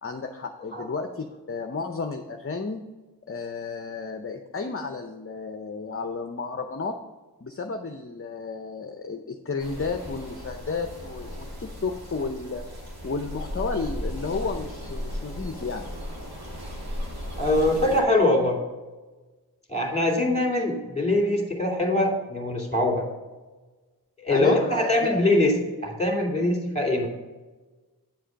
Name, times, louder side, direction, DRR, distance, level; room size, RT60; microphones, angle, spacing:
voice 1, 0.0-2.8 3.3-7.0 7.4-12.6 13.0-15.9 24.3-25.2, left 4 dB, 35° left, 5 dB, 0.7 m, -32 dB
sound 1, 9.6-18.0, left 1 dB, 70° right, 2.8 m, -36 dB
voice 2, 17.4-18.6 19.7-23.0 24.2-27.1, left 1 dB, 15° left, 0 dB, 2.6 m, -23 dB
9.4 x 4.9 x 5.2 m, 1.2 s
wide cardioid pair, 55°, 38 cm